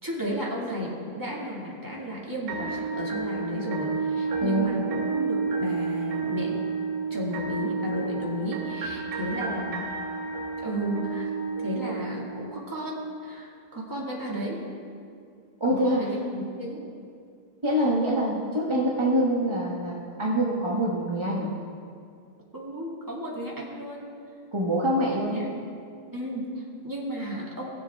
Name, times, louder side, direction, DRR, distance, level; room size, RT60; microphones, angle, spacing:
voice 1, 0.0-6.7 7.1-9.9 10.6-11.3 11.6-14.6 15.7-16.9 22.5-24.1 25.0-25.5 26.1-27.7, equal, 10° right, -5 dB, 1.7 m, -33 dB
sound 1, 2.5-12.5, right 5 dB, 55° right, 1.7 m, -30 dB
voice 2, 15.6-16.0 17.6-21.5 24.5-25.3, right 1 dB, 25° right, -5 dB, 0.6 m, -25 dB
18.5 x 7.5 x 3.5 m, 2.3 s
omnidirectional pair, 2.4 m